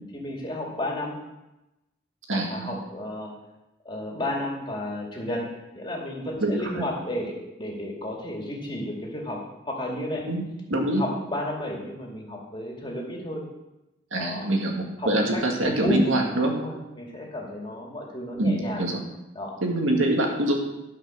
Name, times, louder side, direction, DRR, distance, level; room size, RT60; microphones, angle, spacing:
voice 1, 0.1-1.2 2.3-3.3 3.8-5.5 5.7-10.3 10.9-13.4 14.1-14.5 15.0-16.0 16.5-18.9 19.3-19.6, left 1 dB, 25° left, -2 dB, 2.4 m, -32 dB
voice 2, 2.3-2.8 6.4-6.9 10.3-10.4 10.7-11.0 14.1-16.6 18.4-19.0 19.6-20.6, right 1 dB, 80° right, 1 dB, 2.1 m, -25 dB
13.0 x 5.7 x 6.3 m, 0.96 s
head